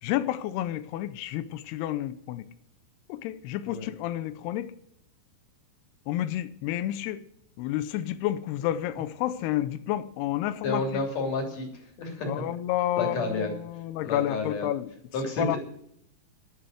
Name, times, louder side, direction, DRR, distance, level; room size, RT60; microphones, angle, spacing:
voice 1, 0.0-2.5 3.1-4.7 6.1-7.2 7.6-10.8 12.3-14.9 15.4-15.6, left 13 dB, 90° left, 2.2 m, -30 dB
voice 2, 10.6-12.3 13.0-13.5 14.0-14.7 15.1-15.6, left 3 dB, 40° left, 3.8 m, -30 dB
11.0 x 9.6 x 7.9 m
omnidirectional pair, 5.3 m